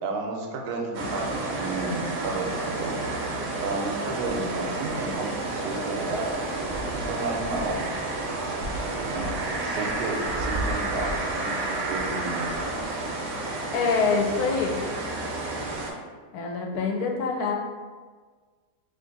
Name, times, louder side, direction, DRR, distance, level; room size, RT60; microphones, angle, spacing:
voice 1, 0.0-2.9 3.6-7.8 9.0-12.5, right 3 dB, 85° right, 1 dB, 1.1 m, -32 dB
sound 1, 0.9-15.9, right 2 dB, 65° right, 0.9 m, -30 dB
voice 2, 13.7-14.8 16.3-17.5, left 4 dB, 85° left, 1 dB, 1.1 m, -25 dB
2.8 x 2.5 x 3.8 m, 1.5 s
omnidirectional pair, 1.6 m